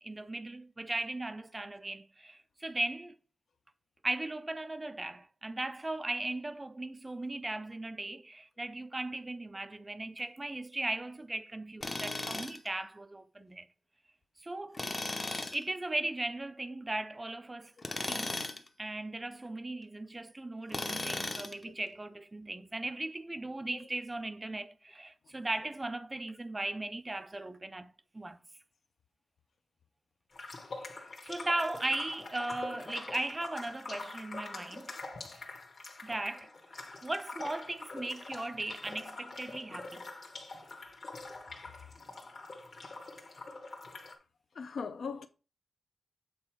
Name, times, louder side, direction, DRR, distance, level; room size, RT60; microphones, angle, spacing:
voice 1, 0.0-3.2 4.0-13.7 14.4-14.8 15.5-17.7 18.0-18.4 18.8-28.4 30.8-30.9 31.2-35.0 36.0-40.0, right 2 dB, 15° right, 0.4 m, -37 dB
Tools, 11.8-12.7 14.7-15.6 17.8-18.7 20.7-21.6, left 2 dB, 25° left, 0.7 m, -36 dB
sound 1, 30.3-44.1, left 3 dB, 40° left, 1.2 m, -45 dB
voice 2, 44.6-45.3, left 5 dB, 60° left, 0.6 m, -38 dB
7.7 x 4.1 x 4.5 m
wide cardioid pair, 180°, 0 cm